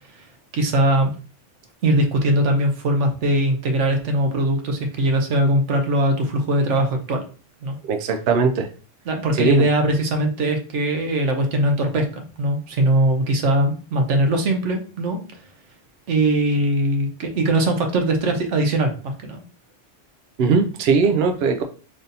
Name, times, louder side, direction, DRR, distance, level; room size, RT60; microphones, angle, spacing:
voice 1, 0.5-1.1 1.8-7.2 7.6-7.8 9.1-15.2 16.1-19.4, right 1 dB, 85° right, 4 dB, 1.1 m, -21 dB
voice 2, 7.8-8.7 9.3-9.7 20.4-21.6, right 4 dB, 65° right, 6 dB, 0.7 m, -19 dB
3.4 x 2.6 x 4.0 m, 0.37 s
omnidirectional pair, 1.2 m